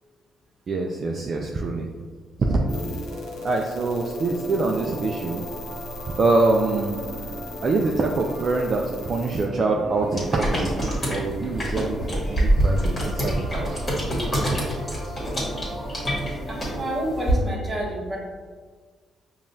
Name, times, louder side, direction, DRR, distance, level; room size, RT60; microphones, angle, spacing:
voice 1, 0.7-1.9 2.5-3.0 3.4-5.4 6.2-7.0 7.6-13.9, right 3 dB, 45° right, 1 dB, 0.3 m, -25 dB
sound 1, 2.4-17.4, equal, 15° left, 0.7 m, -38 dB
sound 2, 2.7-9.5, left 1 dB, 80° left, 0.7 m, -40 dB
sound 3, 10.1-17.3, right 1 dB, 30° left, 1.5 m, -26 dB
voice 2, 16.5-18.2, equal, 20° right, -5 dB, 1.2 m, -29 dB
5.3 x 2.3 x 2.6 m, 1.5 s
cardioid pair, 90°, 0 cm